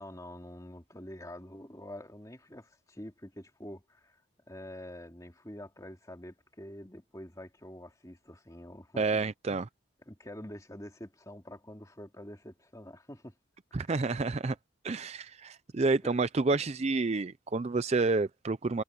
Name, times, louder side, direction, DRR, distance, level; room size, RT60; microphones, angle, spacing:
voice 1, 0.0-4.2 4.5-9.2 10.1-13.3 13.9-14.0 16.0-16.1, left 1 dB, 15° left, 2.8 m, -46 dB
voice 2, 9.0-9.7 13.7-14.6 14.8-18.8, right 3 dB, 30° right, 0.4 m, -29 dB
head